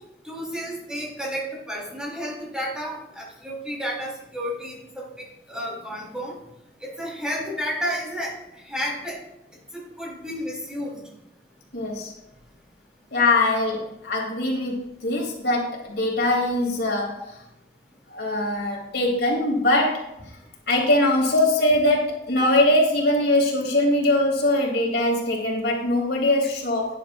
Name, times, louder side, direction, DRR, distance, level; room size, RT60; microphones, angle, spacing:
voice 1, 0.2-6.3 6.8-8.3 8.6-9.2 9.7-11.0, equal, 5° right, -4 dB, 4.1 m, -31 dB
voice 2, 11.7-12.1 13.1-14.7 15.0-17.2 18.1-20.4 20.7-26.9, left 1 dB, 70° left, -1 dB, 3.2 m, -22 dB
18.5 x 10.5 x 2.6 m, 0.87 s
head